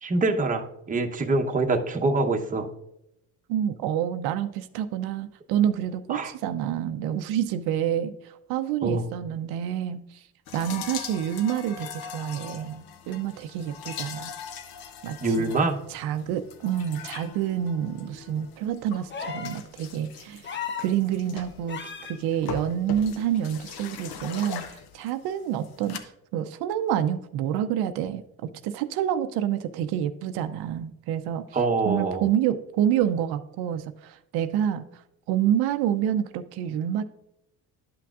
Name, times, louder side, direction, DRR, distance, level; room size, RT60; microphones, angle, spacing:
voice 1, 0.0-2.7 6.1-6.3 8.8-9.0 15.2-15.8 31.5-32.3, right 3 dB, 20° right, 4 dB, 0.8 m, -25 dB
voice 2, 3.5-10.2 10.5-14.3 15.0-15.5 15.9-20.5 20.8-26.0 26.3-28.2 28.6-31.4 31.8-35.0 35.3-37.0, right 10 dB, 85° right, 9 dB, 0.6 m, -28 dB
sound 1, 10.5-26.0, left 7 dB, 75° left, 0.8 m, -41 dB
sound 2, 19.1-19.6 20.4-20.9 21.7-22.2 23.6-23.7, left 7 dB, 30° left, 0.7 m, -34 dB
11.0 x 5.9 x 2.4 m, 0.83 s
cardioid pair, 110°, 37 cm